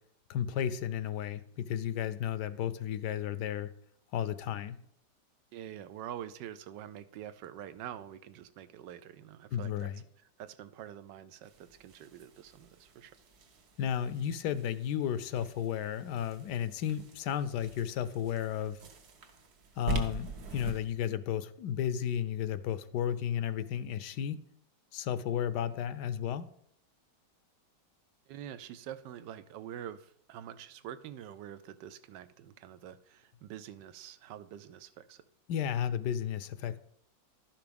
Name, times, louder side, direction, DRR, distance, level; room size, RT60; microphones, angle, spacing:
voice 1, 0.3-3.7 4.1-4.8 9.5-10.0 13.8-18.8 19.8-24.4 24.9-26.5 35.5-36.8, left 9 dB, 75° left, 15 dB, 1.2 m, -33 dB
voice 2, 5.5-9.9 10.4-13.2 28.3-35.2, right 10 dB, 85° right, 13 dB, 1.3 m, -46 dB
sound 1, 11.4-20.8, right 4 dB, 65° right, 1.5 m, -44 dB
11.5 x 5.9 x 5.1 m, 0.69 s
omnidirectional pair, 1.9 m